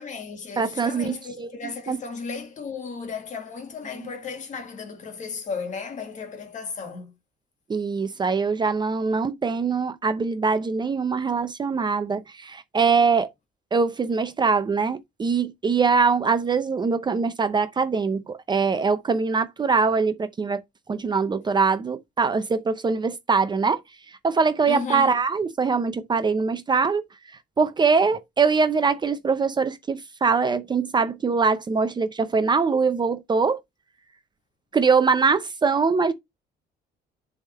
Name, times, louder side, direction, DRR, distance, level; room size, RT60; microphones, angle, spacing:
voice 1, 0.0-7.1 24.7-25.2, left 5 dB, 45° left, 1.9 m, -35 dB
voice 2, 0.6-1.5 1.9-2.0 4.0-4.1 7.7-13.3 13.7-20.6 20.9-23.8 24.1-33.6 34.7-36.1, right 5 dB, 25° right, 0.6 m, -23 dB
7.1 x 3.5 x 4.3 m
cardioid pair, 110°, 17 cm